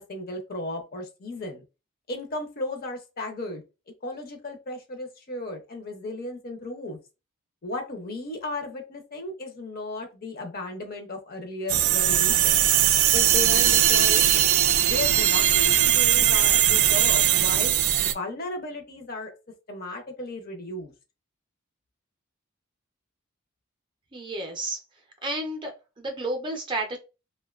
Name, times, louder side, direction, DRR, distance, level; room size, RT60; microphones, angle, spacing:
voice 1, 0.0-1.6 2.1-3.6 4.0-7.0 7.6-12.7 13.1-14.5 14.9-17.7 18.1-19.3 19.7-20.9, left 2 dB, 45° left, 4 dB, 0.5 m, -35 dB
sound 1, 11.7-18.1, right 11 dB, 80° right, 0.3 m, -20 dB
voice 2, 24.1-24.8 25.2-27.0, right 2 dB, 20° right, 3 dB, 0.5 m, -31 dB
2.5 x 2.2 x 2.3 m, 0.29 s
head